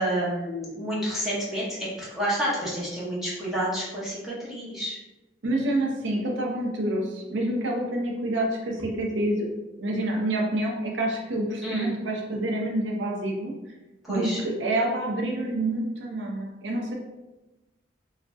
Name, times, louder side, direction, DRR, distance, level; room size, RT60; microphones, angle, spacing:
voice 1, 0.0-1.9 2.1-5.0 11.6-11.9 14.0-14.4, right 1 dB, ahead, -9 dB, 0.7 m, -29 dB
voice 2, 5.4-9.5 9.8-13.5 14.1-14.3 14.6-17.0, right 1 dB, 65° right, 0 dB, 0.4 m, -27 dB
2.6 x 2.0 x 3.4 m, 1.1 s
head